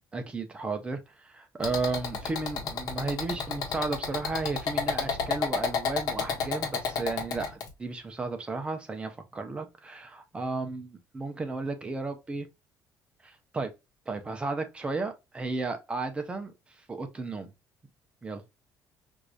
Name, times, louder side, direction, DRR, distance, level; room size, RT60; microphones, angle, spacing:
voice 1, 0.1-1.0 1.4-12.5 13.2-13.7 14.1-16.5 16.9-17.5 18.2-18.4, right 3 dB, 15° right, 0.6 m, -34 dB
sound 1, 1.6-7.7, left 6 dB, 70° left, 1.1 m, -31 dB
4.7 x 2.6 x 2.3 m
cardioid pair, 155°, 7 cm